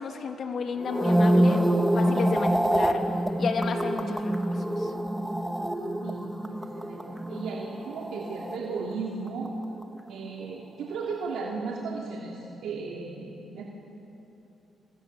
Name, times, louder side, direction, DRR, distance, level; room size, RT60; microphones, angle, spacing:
voice 1, 0.0-1.6 1.9-3.0 3.4-4.9, left 5 dB, 60° left, 4 dB, 3.1 m, -32 dB
sound 1, 0.8-9.2 9.5-9.8, right 1 dB, 10° right, 1.9 m, -26 dB
voice 2, 6.0-9.5 10.1-13.6, right 4 dB, 80° right, -2 dB, 3.1 m, -35 dB
26.5 x 26.0 x 7.3 m, 2.9 s
cardioid pair, 70°, 0 cm